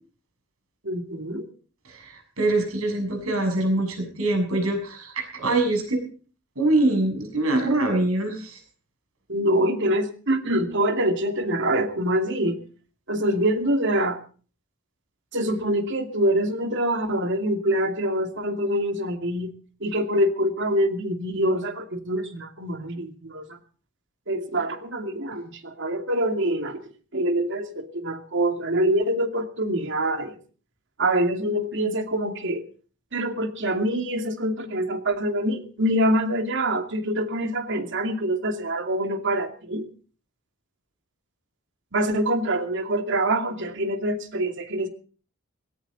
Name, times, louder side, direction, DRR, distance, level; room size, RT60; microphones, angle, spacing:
voice 1, 0.8-1.5 9.3-12.6 13.1-14.2 15.3-19.5 19.8-23.5 24.3-26.8 27.1-30.4 31.0-32.6 33.1-39.9 41.9-44.9, right 1 dB, 60° right, 7 dB, 2.4 m, -25 dB
voice 2, 1.9-6.0 6.6-8.6, right 2 dB, 75° right, 5 dB, 7.0 m, -24 dB
18.5 x 17.0 x 4.0 m, 0.40 s
head